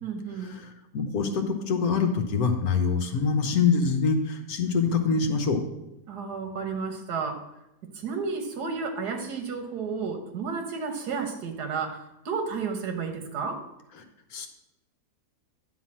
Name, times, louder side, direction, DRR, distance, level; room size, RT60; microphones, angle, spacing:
voice 1, 0.0-0.6 6.1-7.5 7.9-13.6, right 5 dB, 90° right, 5 dB, 1.7 m, -32 dB
voice 2, 0.9-5.6 14.3-14.5, left 5 dB, 70° left, 5 dB, 1.5 m, -24 dB
10.5 x 3.8 x 7.4 m, 0.89 s
omnidirectional pair, 1.7 m